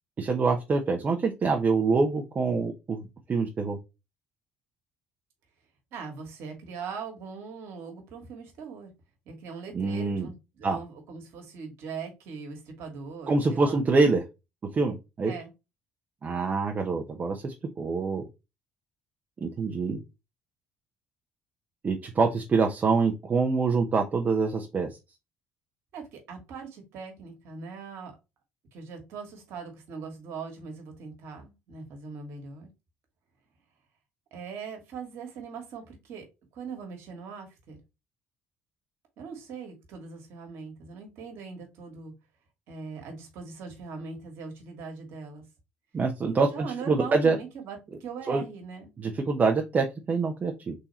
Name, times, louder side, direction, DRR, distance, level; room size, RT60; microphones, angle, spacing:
voice 1, 0.2-3.0 3.3-3.8 9.7-10.3 10.6-10.8 13.3-14.2 14.7-15.3 16.2-18.2 19.4-20.0 21.8-24.9 45.9-47.4 48.3-48.4 49.0-50.7, right 4 dB, 40° right, 2 dB, 0.8 m, -25 dB
voice 2, 5.9-8.9 9.2-13.8 15.2-15.5 25.9-28.1 28.7-32.7 34.3-36.3 36.5-37.8 39.2-42.1 42.7-45.4 46.2-48.9, right 5 dB, 70° right, 4 dB, 1.6 m, -40 dB
3.7 x 2.8 x 4.2 m, 0.25 s
hypercardioid pair, 60°, 5 cm